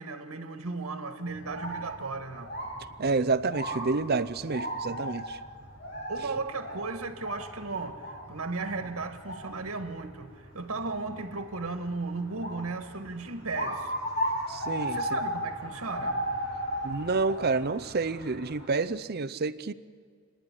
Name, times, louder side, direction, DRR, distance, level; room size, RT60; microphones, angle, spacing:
voice 1, 0.0-2.5 6.1-13.9 14.9-16.2, right 3 dB, 85° right, 1.5 m, -35 dB
sound 1, 1.3-18.7, equal, 50° left, 7.5 m, -36 dB
voice 2, 3.0-5.4 14.5-15.0 16.8-19.7, right 3 dB, 45° right, 0.6 m, -29 dB
30.0 x 10.5 x 9.9 m
head